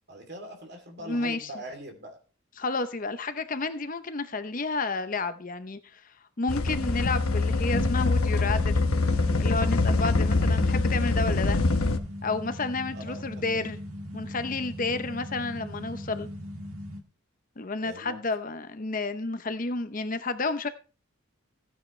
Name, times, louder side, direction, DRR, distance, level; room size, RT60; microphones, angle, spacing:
voice 1, 0.1-2.2 12.9-13.7 17.8-18.2, right 1 dB, 50° right, 3.0 m, -42 dB
voice 2, 1.0-1.5 2.6-8.8 9.4-11.6 12.2-13.8 14.1-16.3 17.6-20.7, left 3 dB, 40° left, 0.7 m, -31 dB
sound 1, 6.5-12.0, left 3 dB, 80° left, 1.1 m, -24 dB
sound 2, 6.6-17.0, left 1 dB, 80° right, 1.8 m, -39 dB
16.0 x 9.4 x 3.2 m
head